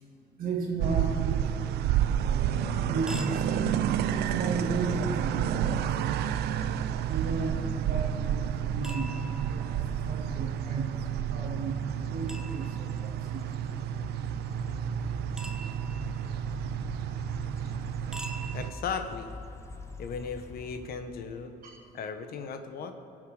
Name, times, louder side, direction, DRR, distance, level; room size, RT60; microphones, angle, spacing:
voice 1, 0.4-1.6 2.3-3.6 4.3-6.4 7.1-11.8 12.1-13.4 21.6-21.8, right 3 dB, 55° right, -5 dB, 2.5 m, -34 dB
sound 1, 0.8-18.7, right 10 dB, 75° right, 0.6 m, -30 dB
sound 2, 2.9-20.9, right 1 dB, 5° right, 1.3 m, -49 dB
sound 3, 4.4-21.6, left 2 dB, 15° left, 0.9 m, -45 dB
voice 2, 18.5-19.3 20.0-21.5 21.9-22.9, left 6 dB, 65° left, 7 dB, 1.2 m, -36 dB
22.5 x 7.5 x 4.9 m, 2.6 s
cardioid pair, 110°, 17 cm